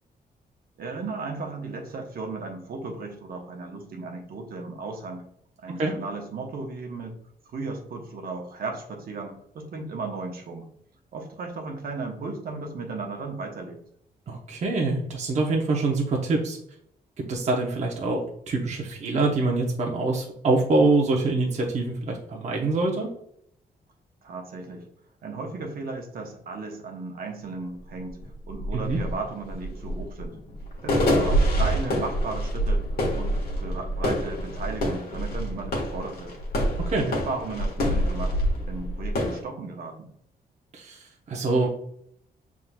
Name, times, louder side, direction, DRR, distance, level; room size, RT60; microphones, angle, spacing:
voice 1, 0.8-5.2 5.6-7.2 7.4-10.7 11.1-13.8 24.2-24.8 25.2-28.2 28.5-30.4 30.8-32.8 33.1-36.4 36.9-38.4 38.7-40.0, right 3 dB, 65° right, 2 dB, 1.0 m, -35 dB
voice 2, 14.3-16.6 17.2-23.1 28.7-29.0 36.9-37.1 40.7-41.7, right 3 dB, 45° right, -1 dB, 0.8 m, -25 dB
sound 1, 27.5-27.6 27.9-39.4, equal, 65° left, 1.4 m, -26 dB
5.8 x 3.6 x 2.2 m, 0.70 s
cardioid pair, 115°, 17 cm